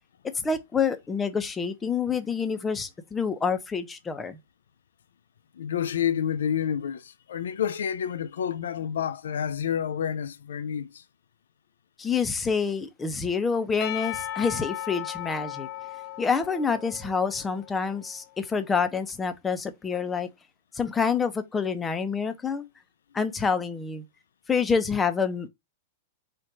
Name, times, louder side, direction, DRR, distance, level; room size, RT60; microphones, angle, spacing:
voice 1, 0.4-4.4 12.0-15.7 16.2-20.3 20.7-22.6 23.1-24.0 24.5-25.5, left 5 dB, 15° left, 0.7 m, -27 dB
voice 2, 5.6-11.0, left 8 dB, 80° left, 0.4 m, -29 dB
Percussion / Church bell, 13.8-18.0, left 13 dB, 50° left, 1.1 m, -36 dB
4.4 x 2.5 x 4.6 m
hypercardioid pair, 120°, 0 cm